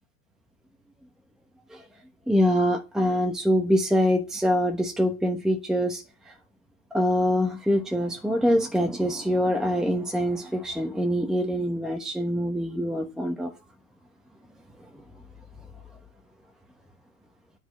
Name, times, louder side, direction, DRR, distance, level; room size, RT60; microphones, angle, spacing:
voice 1, 2.3-6.3 6.9-13.5, equal, ahead, 1.1 m, -24 dB
9.8 x 5.3 x 8.1 m
supercardioid pair, 135°, 47 cm